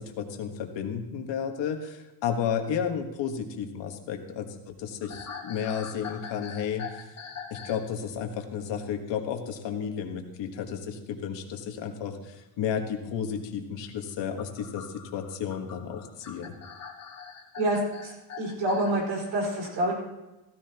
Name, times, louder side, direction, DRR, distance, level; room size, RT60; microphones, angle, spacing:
voice 1, 0.0-7.1 7.5-16.5, left 7 dB, 75° left, 4 dB, 1.6 m, -32 dB
sound 1, 5.0-7.8 8.1-8.4 10.6-10.8 12.1-12.2 14.1-18.9, left 6 dB, 35° left, 1.6 m, -43 dB
voice 2, 17.6-18.1 18.4-19.9, right 1 dB, 90° right, -2 dB, 5.0 m, -27 dB
15.5 x 14.0 x 3.0 m, 1.0 s
cardioid pair, 145°, 43 cm